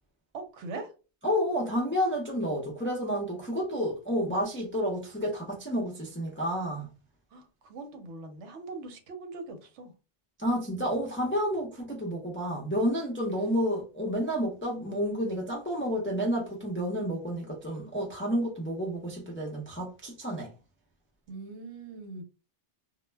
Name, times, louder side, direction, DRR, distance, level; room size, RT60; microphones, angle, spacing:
voice 1, 0.3-0.9 7.3-9.9 13.3-13.5 21.3-22.2, right 3 dB, 80° right, 0.9 m, -41 dB
voice 2, 1.2-6.9 10.4-20.5, equal, 20° left, 0.4 m, -30 dB
2.2 x 2.1 x 3.2 m
omnidirectional pair, 1.2 m